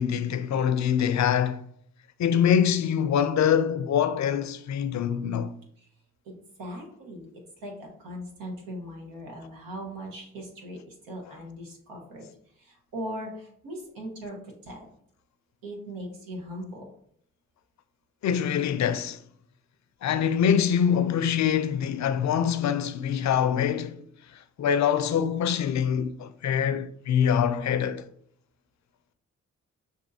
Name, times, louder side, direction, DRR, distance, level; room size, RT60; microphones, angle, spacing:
voice 1, 0.0-1.6 2.2-5.5 18.2-19.2 20.0-24.0 24.6-28.1, left 8 dB, 55° left, 0.5 m, -24 dB
voice 2, 6.2-7.3 7.6-12.3 12.6-14.9 15.6-16.8, equal, 90° right, 1.3 m, -39 dB
6.2 x 2.7 x 2.7 m
supercardioid pair, 50°, 33 cm